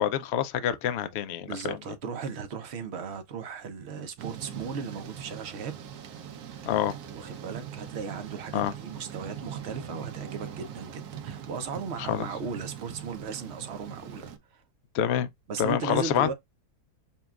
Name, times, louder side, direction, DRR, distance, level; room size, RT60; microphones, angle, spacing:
voice 1, 0.0-1.8 6.7-6.9 8.5-8.7 12.0-12.3 14.9-15.3 15.6-16.3, left 10 dB, 80° left, 0.5 m, -27 dB
voice 2, 1.4-5.8 7.1-14.6 15.5-16.3, right 5 dB, 60° right, 0.8 m, -36 dB
Thunder / Rain, 4.2-14.4, right 9 dB, 75° right, 1.3 m, -41 dB
6.9 x 2.3 x 2.3 m
omnidirectional pair, 1.7 m